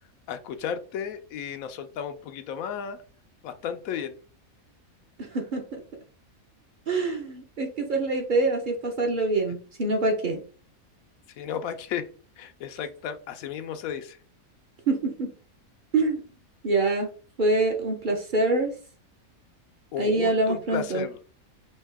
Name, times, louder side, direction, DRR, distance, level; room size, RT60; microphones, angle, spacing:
voice 1, 0.3-3.0 3.4-4.1 11.4-12.0 12.4-14.2 19.9-21.2, left 8 dB, 75° left, 9 dB, 1.1 m, -34 dB
voice 2, 5.2-5.8 6.9-10.4 14.9-15.3 15.9-16.2 16.6-17.1 17.4-18.7 20.0-21.0, right 2 dB, 45° right, 4 dB, 0.8 m, -25 dB
5.5 x 2.8 x 3.4 m, 0.39 s
omnidirectional pair, 1.5 m